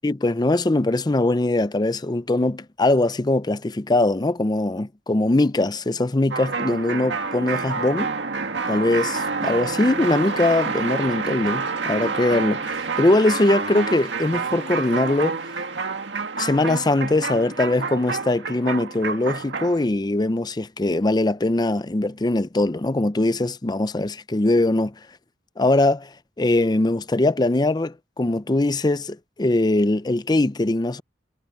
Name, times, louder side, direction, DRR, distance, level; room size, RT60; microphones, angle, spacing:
voice 1, 0.0-8.1 8.7-15.4 16.4-24.9 25.6-26.1 26.4-31.0, left 2 dB, 25° left, 0.6 m, -21 dB
sound 1, 6.3-19.8, right 4 dB, 75° right, 2.0 m, -28 dB
head